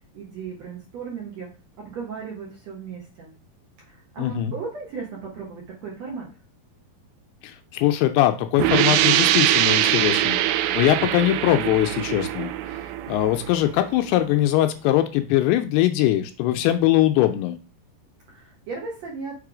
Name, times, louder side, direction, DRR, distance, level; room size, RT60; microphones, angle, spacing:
voice 1, 0.1-1.5 1.8-3.3 3.8-6.3 18.3-19.4, right 5 dB, 65° right, -2 dB, 1.7 m, -36 dB
voice 2, 4.2-4.5 7.4-10.4 10.7-12.5 13.1-17.6, left 13 dB, 80° left, 8 dB, 2.4 m, -21 dB
sound 1, 8.6-14.1, right 13 dB, 85° right, 2.2 m, -22 dB
6.6 x 3.4 x 4.9 m, 0.33 s
omnidirectional pair, 4.8 m